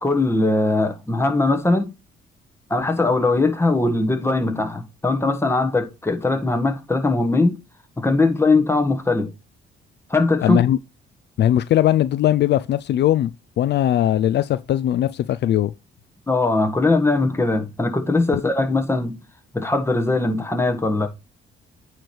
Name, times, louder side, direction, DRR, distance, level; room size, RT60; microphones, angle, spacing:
voice 1, 0.0-1.9 2.7-7.6 8.0-9.3 10.1-10.6 16.3-19.2 19.5-21.1, left 2 dB, 10° left, 1.5 m, -20 dB
voice 2, 10.4-10.8 11.4-13.3 13.6-15.7, left 12 dB, 60° left, 0.4 m, -19 dB
9.1 x 3.3 x 4.5 m
cardioid pair, 90°, 20 cm